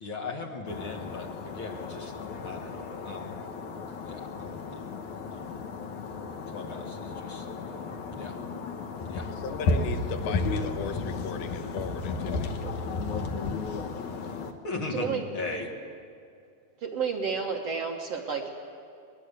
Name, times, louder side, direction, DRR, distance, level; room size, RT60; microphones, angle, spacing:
voice 1, 0.0-2.1 2.4-2.8 3.0-3.4 4.0-5.0 5.3-5.6 6.5-7.4 8.2-8.3 9.1-9.3 14.6-15.7, left 3 dB, 45° left, 1 dB, 1.9 m, -37 dB
sound 1, 0.7-14.5, left 3 dB, 60° left, 2.4 m, -33 dB
voice 2, 9.4-12.5, left 6 dB, 80° left, 6 dB, 3.1 m, -37 dB
voice 3, 14.9-15.4 16.8-18.5, right 6 dB, 55° right, 0 dB, 1.9 m, -31 dB
22.0 x 20.5 x 8.3 m, 2.4 s
omnidirectional pair, 4.3 m